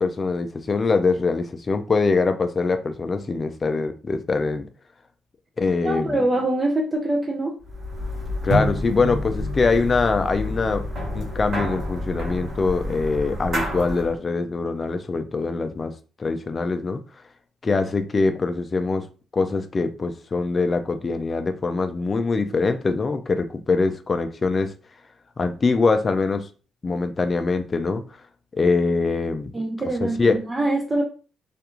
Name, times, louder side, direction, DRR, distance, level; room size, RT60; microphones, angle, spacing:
voice 1, 0.0-4.7 5.6-6.2 8.4-10.8 11.1-15.9 16.2-17.0 17.6-19.1 19.3-24.7 25.4-26.5 26.8-28.0 28.5-29.5 30.0-30.4, left 4 dB, 35° left, 9 dB, 0.4 m, -23 dB
voice 2, 5.8-7.6 29.5-31.0, right 2 dB, 25° right, 0 dB, 0.5 m, -24 dB
sound 1, 7.7-14.2, left 1 dB, 50° right, 1.1 m, -28 dB
2.4 x 2.2 x 2.9 m, 0.37 s
cardioid pair, 90°, 0 cm